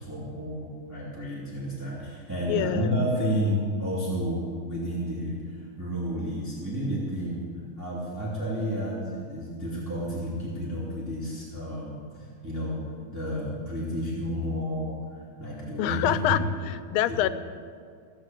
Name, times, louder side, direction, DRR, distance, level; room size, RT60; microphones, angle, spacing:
voice 1, 0.0-7.4 7.8-12.8 13.1-16.5 17.1-17.2, equal, 10° right, -9 dB, 2.9 m, -31 dB
voice 2, 2.5-2.9 15.8-16.4 16.7-17.3, left 12 dB, 85° left, 13 dB, 1.5 m, -25 dB
16.5 x 6.4 x 8.9 m, 2.2 s
omnidirectional pair, 2.3 m